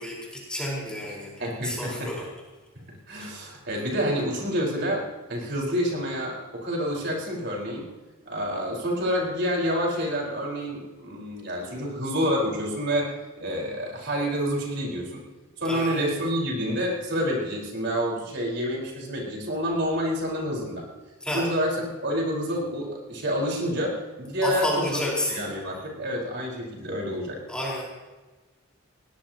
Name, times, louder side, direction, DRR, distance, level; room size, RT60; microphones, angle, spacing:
voice 1, 0.0-1.3 1.6-2.3 3.2-3.3 15.6-16.0 21.2-21.5 24.4-25.4 27.5-27.8, left 1 dB, 5° left, -4 dB, 4.5 m, -30 dB
voice 2, 1.1-2.1 3.1-7.9 8.3-13.1 13.4-15.2 15.6-20.8 21.3-25.0 25.3-27.4, equal, 50° right, -2 dB, 4.6 m, -28 dB
21.5 x 18.5 x 2.9 m, 1.3 s
head